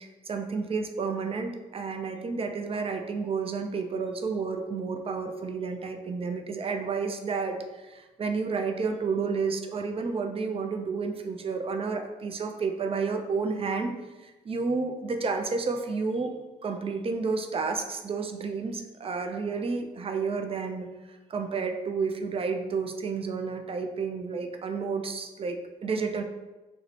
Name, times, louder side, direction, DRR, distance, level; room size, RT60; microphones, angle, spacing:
voice 1, 0.2-13.9 14.2-16.3 16.6-20.9 21.3-26.2, right 4 dB, 30° right, 5 dB, 0.4 m, -31 dB
2.6 x 2.0 x 3.0 m, 1.1 s
hypercardioid pair, 40°, 21 cm